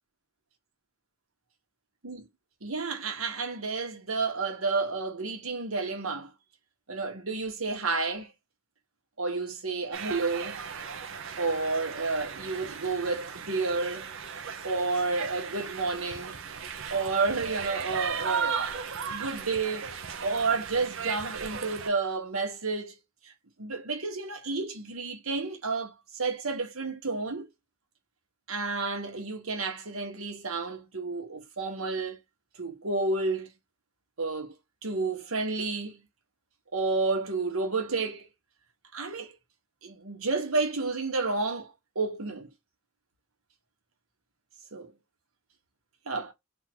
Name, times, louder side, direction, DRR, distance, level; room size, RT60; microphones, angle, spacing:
voice 1, 2.6-6.3 6.9-8.3 9.2-10.6 11.4-14.1 14.6-16.4 16.9-18.6 19.0-19.9 20.2-22.9 23.2-23.3 23.6-27.5 28.5-32.2 32.6-33.5 34.2-34.5 34.8-36.0 36.7-38.3 38.9-39.3 39.8-42.5 44.7-44.9 46.1-46.3, right 3 dB, 85° right, 1.4 m, -31 dB
sound 1, 9.9-21.9, right 6 dB, 70° right, 0.7 m, -36 dB
3.7 x 2.7 x 4.5 m
head